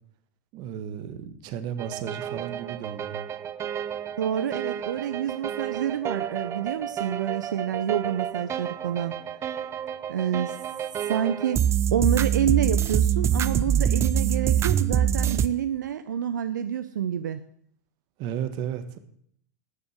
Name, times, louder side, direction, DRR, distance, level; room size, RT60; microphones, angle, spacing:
voice 1, 0.5-3.2 18.2-19.0, right 9 dB, 45° right, 11 dB, 1.6 m, -34 dB
sound 1, 1.8-15.5, right 9 dB, 30° right, 0.7 m, -27 dB
voice 2, 4.2-9.2 10.1-10.6 11.0-17.4, right 9 dB, 80° right, 12 dB, 0.6 m, -28 dB
13.0 x 7.0 x 8.0 m, 0.66 s
hypercardioid pair, 100°, 10 cm